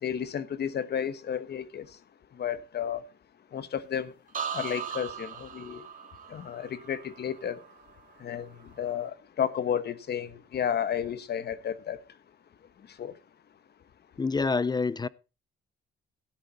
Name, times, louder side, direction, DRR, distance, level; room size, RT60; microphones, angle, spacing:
voice 1, 0.0-1.9 2.4-3.0 3.5-4.1 4.5-5.8 6.3-7.6 8.2-8.5 8.8-12.0 13.0-13.1, left 8 dB, 55° left, 1.2 m, -32 dB
sound 1, 4.3-8.2 8.5-9.0, right 7 dB, 40° right, 2.3 m, -39 dB
voice 2, 14.2-15.1, left 4 dB, 20° left, 0.5 m, -27 dB
13.0 x 10.0 x 4.1 m
cardioid pair, 90°, 20 cm